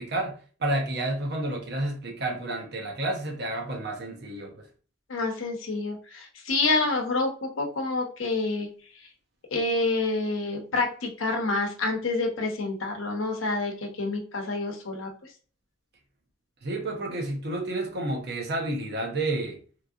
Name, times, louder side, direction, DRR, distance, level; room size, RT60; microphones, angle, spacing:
voice 1, 0.0-4.7 16.6-19.6, right 2 dB, 55° right, 2 dB, 0.7 m, -30 dB
voice 2, 5.1-8.7 9.5-15.1, left 3 dB, 80° left, 3 dB, 0.7 m, -28 dB
3.1 x 2.6 x 2.4 m, 0.39 s
head